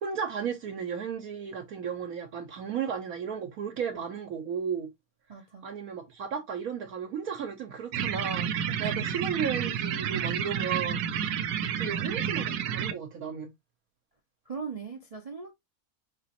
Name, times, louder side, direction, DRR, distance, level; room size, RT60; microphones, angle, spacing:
voice 1, 0.0-4.9 5.6-8.5 8.8-11.1 11.8-13.5, right 7 dB, 70° right, 1.1 m, -34 dB
voice 2, 5.3-5.7 8.9-9.0 14.5-15.5, right 5 dB, 40° right, 0.5 m, -39 dB
sound 1, 7.9-12.9, right 8 dB, 85° right, 1.1 m, -30 dB
5.2 x 3.0 x 2.8 m
omnidirectional pair, 1.7 m